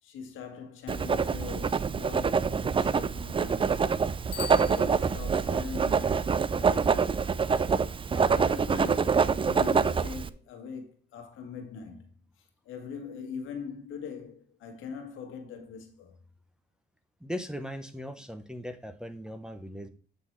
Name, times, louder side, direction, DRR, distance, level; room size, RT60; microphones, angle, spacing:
voice 1, 0.0-3.9 4.2-7.4 8.1-12.1 12.4-16.2, left 6 dB, 85° left, 1.8 m, -42 dB
Writing, 0.9-10.3, right 5 dB, 25° right, 0.4 m, -26 dB
Bicycle bell, 4.3-5.6, left 7 dB, 50° left, 0.7 m, -42 dB
voice 2, 17.2-19.9, equal, 5° right, 0.9 m, -38 dB
8.7 x 4.0 x 4.6 m
cardioid pair, 90°, 20 cm